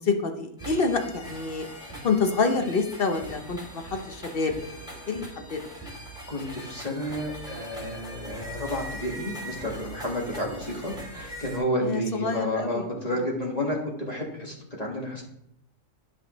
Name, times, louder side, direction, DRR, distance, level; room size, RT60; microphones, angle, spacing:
voice 1, 0.0-1.7 2.0-5.6 11.8-12.9, left 4 dB, 50° left, 6 dB, 0.9 m, -27 dB
sound 1, 0.6-11.6, right 1 dB, 5° right, 2.6 m, -41 dB
voice 2, 6.3-15.2, equal, 30° left, -1 dB, 1.7 m, -31 dB
11.0 x 5.2 x 3.1 m, 0.76 s
omnidirectional pair, 1.4 m